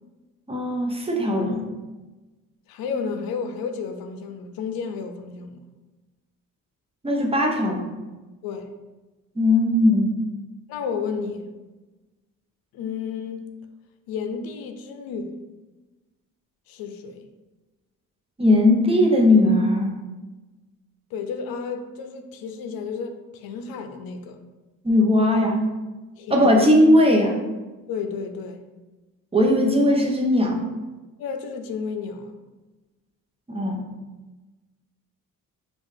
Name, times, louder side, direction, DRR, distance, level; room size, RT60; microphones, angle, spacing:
voice 1, 0.5-1.7 7.0-7.8 9.4-10.1 18.4-19.9 24.8-25.6 26.3-27.4 29.3-30.6 33.5-33.8, left 1 dB, 15° right, 0 dB, 0.8 m, -18 dB
voice 2, 2.7-5.6 8.4-8.7 10.7-11.5 12.7-13.5 14.1-15.4 16.7-17.3 21.1-24.4 26.2-26.6 27.9-28.6 31.2-32.3, left 5 dB, 85° left, 6 dB, 0.5 m, -32 dB
5.4 x 2.5 x 3.2 m, 1.2 s
cardioid pair, 80°, 35 cm